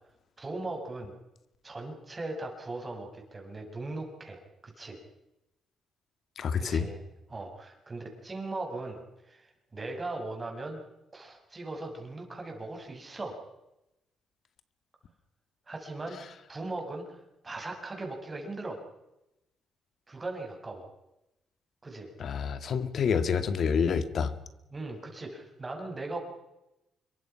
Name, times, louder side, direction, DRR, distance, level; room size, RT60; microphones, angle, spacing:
voice 1, 0.4-1.1 1.6-5.0 6.6-7.0 7.3-10.8 11.1-13.4 15.7-18.8 20.1-20.9 21.8-22.1 24.7-26.2, right 2 dB, 25° right, 2 dB, 6.8 m, -39 dB
voice 2, 6.4-6.9 22.2-24.3, left 6 dB, 60° left, 12 dB, 2.0 m, -28 dB
26.0 x 23.0 x 5.9 m, 0.92 s
cardioid pair, 90°, 0 cm